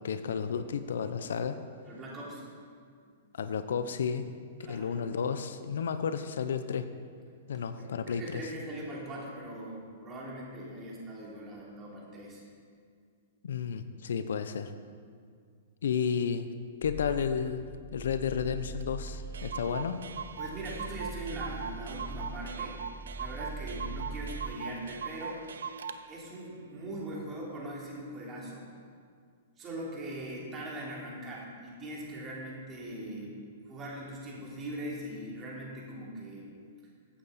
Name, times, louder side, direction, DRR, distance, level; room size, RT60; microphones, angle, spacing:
voice 1, 0.0-1.6 3.3-4.3 4.7-6.9 7.5-8.4 13.4-14.7 15.8-16.5 16.8-20.0, left 7 dB, 80° left, 11 dB, 0.7 m, -32 dB
voice 2, 1.9-2.5 3.0-3.1 4.6-5.0 7.8-12.4 20.4-22.8 23.1-25.4 26.1-28.7 29.6-33.4 33.7-36.5, right 1 dB, 25° right, -5 dB, 3.2 m, -41 dB
sound 1, 16.8-24.5, right 3 dB, 5° right, 0.5 m, -42 dB
Clock, 18.8-18.9 19.1-19.2 19.3-26.0, right 6 dB, 85° right, 0.6 m, -40 dB
15.0 x 8.6 x 4.2 m, 2.1 s
hypercardioid pair, 140°, 0 cm